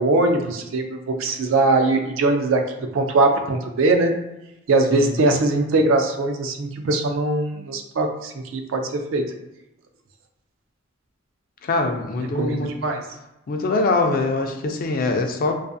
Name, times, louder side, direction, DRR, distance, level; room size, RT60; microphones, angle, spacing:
voice 1, 0.0-2.6 2.9-4.1 4.7-9.2 12.3-13.1, right 2 dB, 75° right, 5 dB, 0.4 m, -21 dB
voice 2, 11.6-12.7 13.5-15.6, left 3 dB, 45° left, 4 dB, 0.3 m, -23 dB
2.4 x 2.3 x 2.5 m, 0.92 s
head